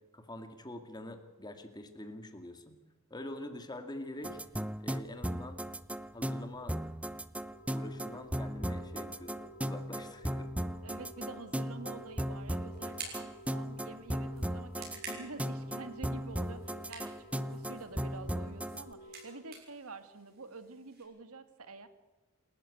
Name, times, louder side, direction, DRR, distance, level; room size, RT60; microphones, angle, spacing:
voice 1, 0.1-2.8 3.1-4.4 4.8-5.6 6.1-6.8 7.7-10.5, left 1 dB, 20° left, 6 dB, 2.3 m, -45 dB
sound 1, 4.2-18.8, equal, 5° right, 0.7 m, -37 dB
sound 2, 7.5-19.4, left 1 dB, 40° left, 2.0 m, -54 dB
voice 2, 10.8-21.9, right 3 dB, 80° right, 10 dB, 1.9 m, -48 dB
sound 3, 11.8-21.0, right 4 dB, 45° right, 6.6 m, -52 dB
28.0 x 13.5 x 8.6 m, 1.2 s
head